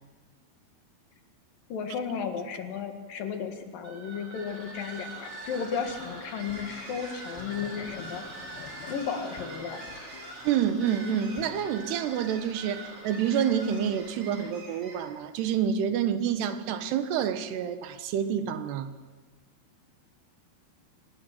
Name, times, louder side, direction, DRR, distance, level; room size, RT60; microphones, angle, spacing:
voice 1, 1.7-8.2 8.9-9.9, left 6 dB, 60° left, 3.4 m, -34 dB
sound 1, 3.8-15.2, right 2 dB, 35° right, 5.0 m, -43 dB
sound 2, 5.7-11.7, left 8 dB, 90° left, 3.8 m, -47 dB
voice 2, 10.4-18.9, right 8 dB, 90° right, 3.4 m, -28 dB
25.0 x 19.0 x 7.7 m
omnidirectional pair, 4.7 m